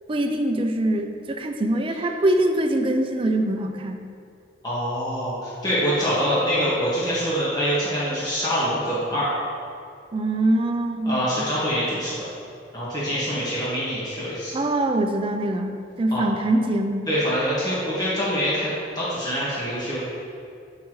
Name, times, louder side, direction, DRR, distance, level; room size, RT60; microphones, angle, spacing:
voice 1, 0.1-4.0 10.1-11.4 14.5-17.1, right 1 dB, 30° right, 4 dB, 0.5 m, -23 dB
voice 2, 4.6-9.3 11.0-12.3 12.7-14.5 16.1-16.2 17.1-20.0, equal, 20° left, -9 dB, 1.6 m, -25 dB
8.4 x 5.8 x 3.1 m, 2.4 s
head